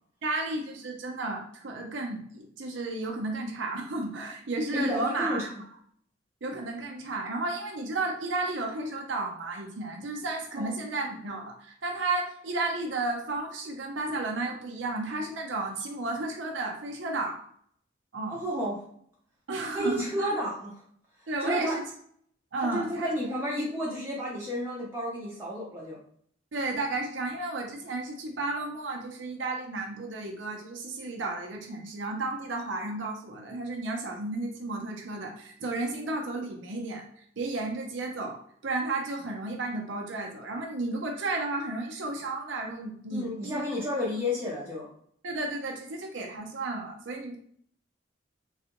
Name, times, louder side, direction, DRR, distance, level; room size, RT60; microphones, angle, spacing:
voice 1, 0.2-5.5 6.4-17.4 18.1-18.4 19.5-20.3 21.3-21.8 22.5-23.1 26.5-43.6 45.2-47.4, right 2 dB, 80° right, 1 dB, 0.7 m, -33 dB
voice 2, 4.7-5.4 10.6-10.7 18.3-18.8 19.7-20.7 21.2-21.8 22.6-26.0 43.1-44.9, equal, 15° right, -6 dB, 0.6 m, -31 dB
3.3 x 2.3 x 2.9 m, 0.63 s
head